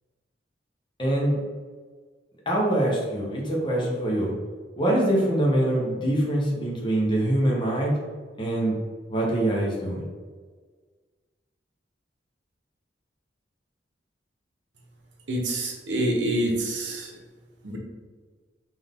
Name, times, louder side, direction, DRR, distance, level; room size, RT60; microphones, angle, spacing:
voice 1, 1.0-1.4 2.5-4.3 4.8-7.9 8.4-8.7 9.1-10.0, right 1 dB, 25° left, -3 dB, 0.8 m, -24 dB
voice 2, 15.3-17.0 17.6-17.8, right 1 dB, 90° right, 1 dB, 0.8 m, -26 dB
3.9 x 2.6 x 3.5 m, 1.5 s
head